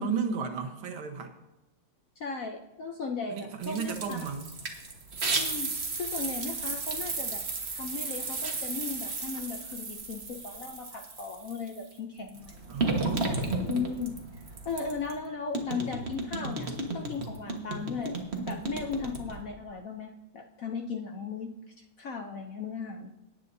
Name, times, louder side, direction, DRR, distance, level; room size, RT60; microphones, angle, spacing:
voice 1, 0.0-1.3 3.3-4.5 12.7-13.7, right 6 dB, 85° right, 5 dB, 2.0 m, -34 dB
voice 2, 2.2-4.2 5.3-7.4 7.7-12.8 13.7-14.2 14.6-18.1 18.5-21.5 22.0-23.1, left 5 dB, 65° left, 4 dB, 0.8 m, -36 dB
sound 1, 3.6-11.8 12.3-15.2 15.5-19.4, right 3 dB, 35° right, 1.4 m, -34 dB
18.5 x 9.2 x 2.7 m, 0.95 s
omnidirectional pair, 2.2 m